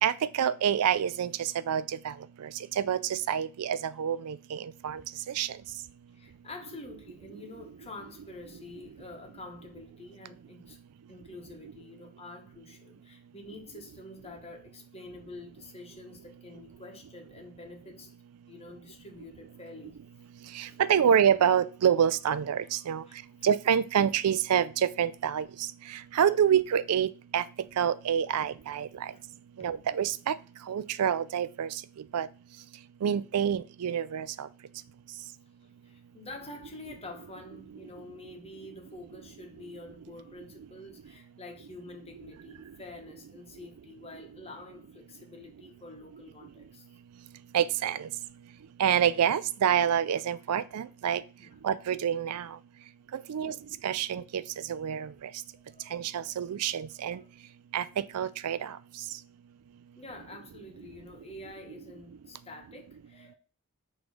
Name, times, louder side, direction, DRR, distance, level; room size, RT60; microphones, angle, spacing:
voice 1, 0.0-2.1 2.8-5.0 5.4-5.5 20.6-23.0 23.4-25.4 26.1-27.4 27.8-28.9 29.6-30.4 30.7-31.7 32.1-32.3 33.0-34.5 47.5-48.1 48.8-51.2 51.6-52.5 53.3-53.5 53.8-54.4 54.7-55.1 55.9-57.2 57.7-57.8 58.1-58.7, right 8 dB, 90° right, 0.4 m, -27 dB
voice 2, 6.1-10.8 11.1-18.1 18.5-20.0 20.6-20.8 23.1-23.5 35.6-46.9 51.4-51.6 53.3-53.6 55.5-56.0 56.3-56.4 56.9-57.3 60.0-63.4, left 2 dB, 25° left, 1.2 m, -47 dB
6.2 x 3.1 x 4.9 m
head